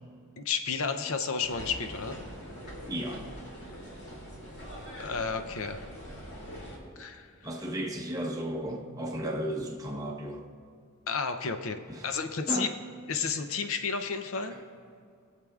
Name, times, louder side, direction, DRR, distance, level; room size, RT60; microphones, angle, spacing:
voice 1, 0.4-2.2 5.0-5.8 7.0-7.3 11.1-12.7 13.1-14.5, left 5 dB, 70° left, 8 dB, 0.6 m, -32 dB
sound 1, 1.4-6.8, equal, 50° left, 2.6 m, -43 dB
voice 2, 2.9-3.3 7.4-10.4 11.9-12.2 12.5-12.7 14.5-14.6, equal, 15° right, 0 dB, 0.9 m, -34 dB
20.5 x 7.6 x 2.4 m, 2.3 s
head